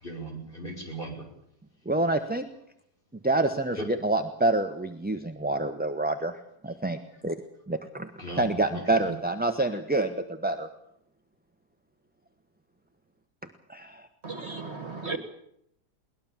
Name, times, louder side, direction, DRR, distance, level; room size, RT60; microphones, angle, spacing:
voice 1, 0.0-1.3 3.8-3.9 8.2-9.1, right 1 dB, 30° left, 1 dB, 6.1 m, -38 dB
voice 2, 1.8-2.5 3.2-6.3 6.6-7.0 7.2-7.4 7.7-8.1 8.4-10.1 10.4-10.7 13.7-14.1, right 2 dB, 5° right, 7 dB, 1.0 m, -27 dB
voice 3, 14.2-15.2, right 3 dB, 40° right, 9 dB, 2.1 m, -35 dB
21.5 x 19.5 x 7.5 m, 0.74 s
omnidirectional pair, 1.8 m